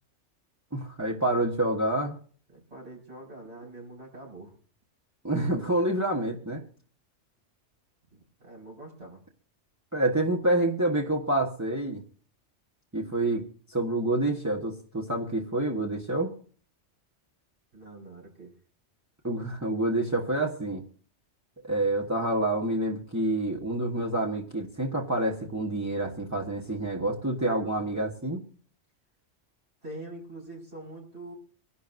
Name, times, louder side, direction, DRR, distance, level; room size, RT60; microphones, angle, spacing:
voice 1, 0.7-2.2 5.2-6.6 9.9-12.0 12.9-13.4 13.7-16.3 19.2-20.8 21.6-28.4, right 1 dB, 15° right, -1 dB, 1.3 m, -27 dB
voice 2, 2.5-4.5 8.1-9.2 17.7-18.5 29.8-31.3, right 2 dB, 60° right, -2 dB, 5.6 m, -44 dB
25.0 x 11.5 x 2.6 m, 0.43 s
omnidirectional pair, 1.2 m